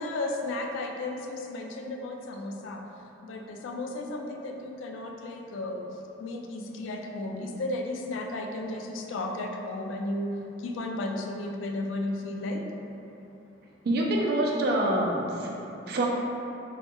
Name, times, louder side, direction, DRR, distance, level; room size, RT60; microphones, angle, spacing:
voice 1, 0.0-2.8 3.2-5.8 6.2-10.3 10.6-12.6, left 2 dB, 90° left, 2 dB, 0.3 m, -34 dB
voice 2, 13.8-15.5 15.9-16.1, right 1 dB, 55° right, -1 dB, 0.4 m, -25 dB
3.2 x 2.2 x 2.9 m, 2.9 s
head